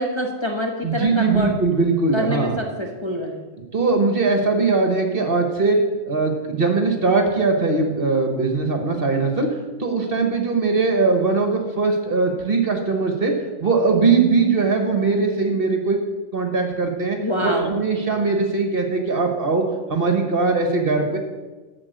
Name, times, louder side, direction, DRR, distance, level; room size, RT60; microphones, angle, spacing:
voice 1, 0.0-1.5 2.1-3.4 17.2-17.7, equal, 20° left, -1 dB, 1.2 m, -25 dB
voice 2, 0.8-2.6 3.7-5.8 6.1-13.3 13.6-16.0 16.3-21.2, right 4 dB, 45° right, 4 dB, 1.4 m, -20 dB
13.0 x 4.4 x 7.9 m, 1.3 s
omnidirectional pair, 1.4 m